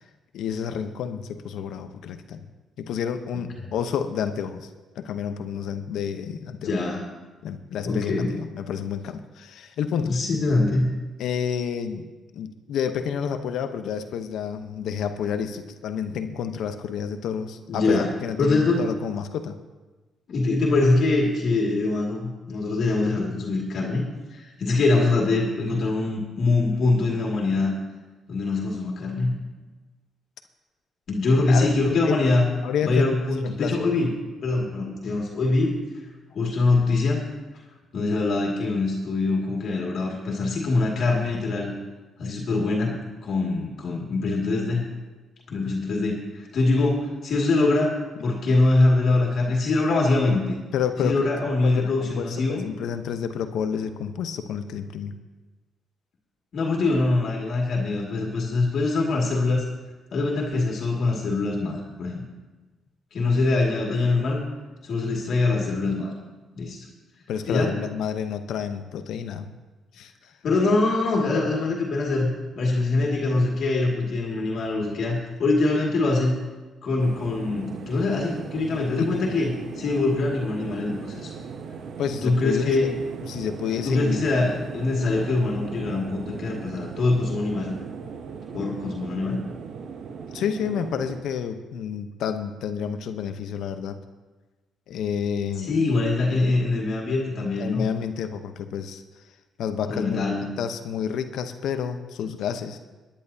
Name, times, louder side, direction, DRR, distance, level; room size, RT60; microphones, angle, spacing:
voice 1, 0.3-2.5 2.8-4.7 5.0-6.7 7.4-10.1 11.2-12.1 12.3-19.6 31.5-31.7 32.0-32.2 32.6-33.1 33.4-33.7 50.7-51.3 51.6-55.1 67.3-69.5 70.0-70.1 79.0-79.2 82.0-84.5 90.3-94.0 94.9-95.8 97.6-99.0 99.6-102.8, left 7 dB, 80° left, 8 dB, 0.8 m, -30 dB
voice 2, 6.6-7.0 7.8-8.3 10.0-10.9 17.7-18.1 18.4-18.9 20.3-27.7 28.3-29.3 31.1-32.5 32.8-34.1 34.4-35.8 36.3-37.2 37.9-41.7 42.2-44.8 45.5-50.6 51.0-52.6 56.5-59.6 60.1-62.2 63.1-64.4 64.8-66.1 66.6-66.8 67.5-67.8 70.4-76.4 76.8-79.5 79.8-81.3 82.2-83.0 83.8-87.7 88.5-89.4 95.6-97.8 99.9-100.6, left 3 dB, 60° left, -2 dB, 2.2 m, -23 dB
sound 1, 77.0-91.2, right 6 dB, 65° right, 0.8 m, -38 dB
22.5 x 10.5 x 2.8 m, 1.2 s
cardioid pair, 90°, 0 cm